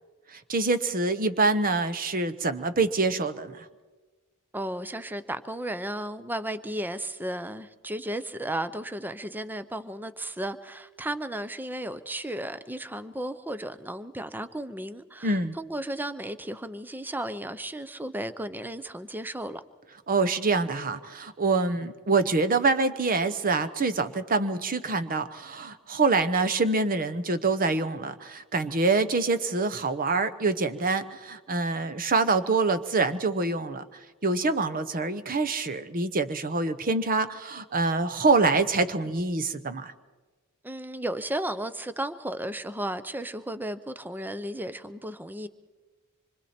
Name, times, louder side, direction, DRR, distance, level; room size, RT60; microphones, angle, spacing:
voice 1, 0.3-3.6 15.2-15.6 20.1-33.8 34.2-39.9, right 3 dB, 40° right, 11 dB, 0.9 m, -25 dB
voice 2, 4.5-19.6 40.6-45.5, right 1 dB, 10° right, 12 dB, 0.6 m, -34 dB
26.0 x 24.5 x 4.4 m, 1.3 s
head